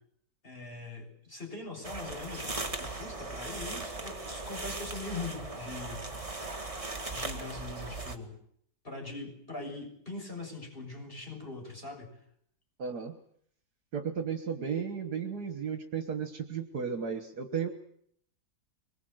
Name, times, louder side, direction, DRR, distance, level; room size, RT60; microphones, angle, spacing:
voice 1, 0.4-6.0 7.1-8.4 8.8-12.1, left 3 dB, 30° left, 1 dB, 6.9 m, -42 dB
sound 1, 1.8-8.2, right 2 dB, 20° right, 2.1 m, -38 dB
voice 2, 12.8-13.2 13.9-17.7, right 7 dB, 65° right, 6 dB, 2.0 m, -34 dB
24.5 x 21.0 x 7.9 m, 0.68 s
omnidirectional pair, 1.8 m